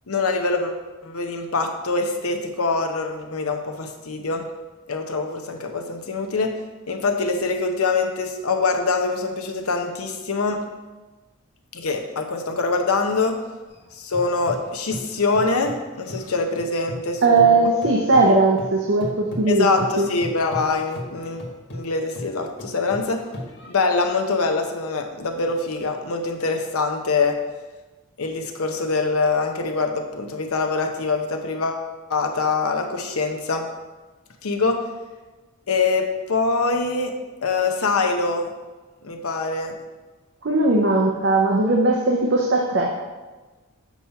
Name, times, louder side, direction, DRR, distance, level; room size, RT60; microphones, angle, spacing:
voice 1, 0.1-4.4 4.9-6.5 6.9-10.6 11.7-13.4 13.9-17.7 19.5-23.2 23.7-27.4 28.2-33.7 34.4-34.8 35.7-37.1 37.4-38.5 39.0-39.7, left 3 dB, 85° left, 4 dB, 0.8 m, -24 dB
sound 1, 13.7-17.1 17.4-24.0, left 1 dB, 55° left, 1.6 m, -36 dB
voice 2, 17.2-19.7 20.0-20.1 40.4-42.9, right 3 dB, 55° right, -1 dB, 0.6 m, -18 dB
7.0 x 3.0 x 5.6 m, 1.2 s
head